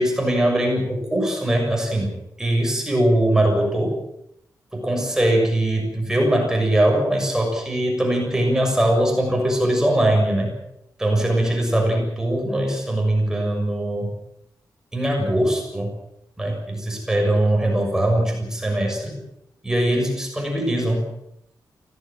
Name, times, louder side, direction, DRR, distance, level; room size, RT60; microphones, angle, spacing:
voice 1, 0.0-2.1 2.4-4.0 4.7-10.5 11.0-14.1 14.9-15.9 16.4-19.1 19.6-21.1, right 1 dB, 10° right, 1 dB, 6.6 m, -21 dB
24.5 x 17.0 x 7.6 m, 0.77 s
wide cardioid pair, 170°, 7 cm